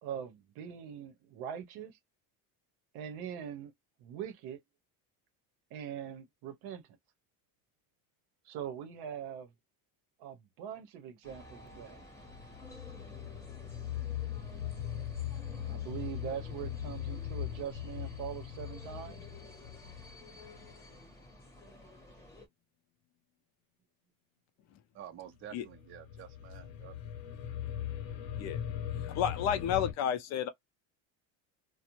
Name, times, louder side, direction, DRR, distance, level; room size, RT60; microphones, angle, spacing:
voice 1, 0.0-2.0 2.9-3.7 4.0-4.6 5.7-6.8 8.4-9.5 10.2-12.0 15.6-19.2, right 9 dB, 65° right, 0.8 m, -42 dB
sound 1, 11.2-22.5, left 1 dB, 5° left, 0.8 m, -52 dB
sound 2, 12.3-21.0 25.4-29.9, left 10 dB, 80° left, 0.8 m, -40 dB
voice 2, 24.9-27.0, right 11 dB, 30° right, 0.5 m, -49 dB
voice 3, 29.1-30.5, left 9 dB, 40° left, 0.5 m, -31 dB
2.5 x 2.1 x 2.9 m
cardioid pair, 165°, 41 cm